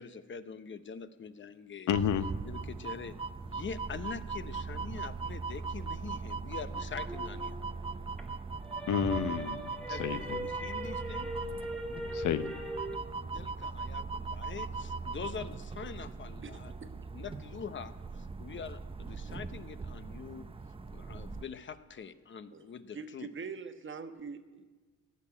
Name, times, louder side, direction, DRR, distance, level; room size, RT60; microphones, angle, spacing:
voice 1, 0.0-1.9 2.5-3.2 3.4-7.6 9.9-11.3 12.9-13.0 13.3-20.5 20.9-23.3, left 6 dB, 40° left, 12 dB, 0.8 m, -44 dB
voice 2, 1.9-2.3 8.9-10.5 12.1-12.5, left 9 dB, 75° left, 12 dB, 0.8 m, -31 dB
sound 1, 1.9-21.4, right 4 dB, 20° right, 0.5 m, -40 dB
sound 2, 6.7-8.2 8.6-13.0, right 1 dB, 5° left, 1.8 m, -40 dB
voice 3, 22.9-24.7, right 5 dB, 40° right, 8 dB, 1.2 m, -43 dB
14.5 x 6.5 x 10.0 m, 1.3 s
cardioid pair, 90°, 30 cm